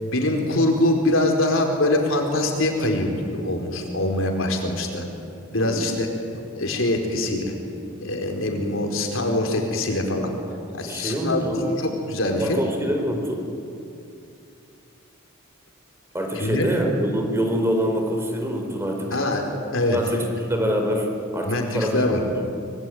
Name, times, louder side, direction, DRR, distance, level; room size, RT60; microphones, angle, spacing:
voice 1, 0.0-5.0 5.5-6.1 6.6-7.5 8.0-10.3 10.8-11.4 11.8-12.6 16.3-16.7 19.1-20.0 21.4-22.2, left 1 dB, 70° left, 3 dB, 4.5 m, -23 dB
voice 2, 10.9-11.7 12.4-13.5 16.1-19.2 19.9-22.4, equal, 10° right, 2 dB, 4.2 m, -25 dB
25.5 x 24.0 x 9.4 m, 2.6 s
head